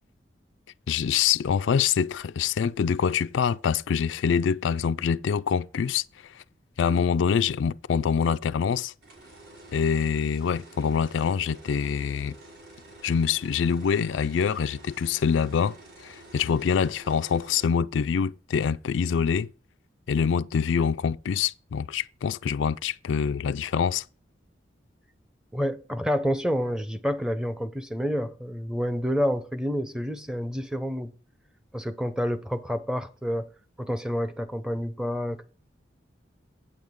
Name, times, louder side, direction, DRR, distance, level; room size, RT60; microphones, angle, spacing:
voice 1, 0.9-6.0 6.4-6.5 6.8-8.9 9.7-12.4 13.0-15.8 16.0-19.5 20.1-24.0, left 7 dB, 90° left, 0.4 m, -25 dB
sound 1, 9.0-17.7, right 1 dB, 70° right, 4.5 m, -49 dB
voice 2, 25.5-31.1 31.7-33.5 33.8-35.4, equal, 5° right, 0.6 m, -28 dB
8.7 x 7.9 x 3.6 m
head